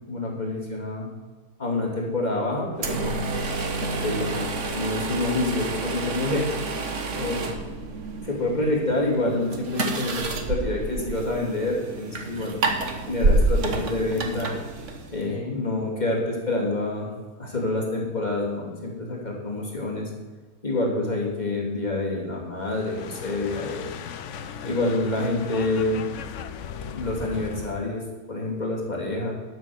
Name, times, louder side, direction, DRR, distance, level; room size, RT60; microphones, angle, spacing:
voice 1, 0.1-1.1 1.6-3.2 3.8-6.5 7.1-7.4 8.2-12.6 13.1-14.6 15.1-17.1 17.4-20.1 20.6-23.9 24.6-26.1 26.9-29.3, left 2 dB, 25° left, -2 dB, 2.4 m, -27 dB
sound 1, 2.8-15.3, right 2 dB, 55° right, 1.4 m, -28 dB
sound 2, 22.6-27.8, left 7 dB, 60° left, 0.9 m, -37 dB
11.5 x 6.4 x 7.0 m, 1.3 s
omnidirectional pair, 1.7 m